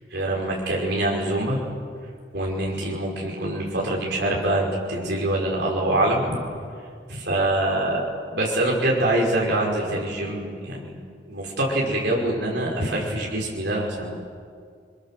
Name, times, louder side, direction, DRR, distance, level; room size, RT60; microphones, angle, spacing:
voice 1, 0.1-1.6 2.3-6.4 7.1-8.0 8.3-11.0 11.3-14.1, right 1 dB, 65° right, -2 dB, 5.6 m, -24 dB
30.0 x 23.5 x 7.7 m, 2.1 s
head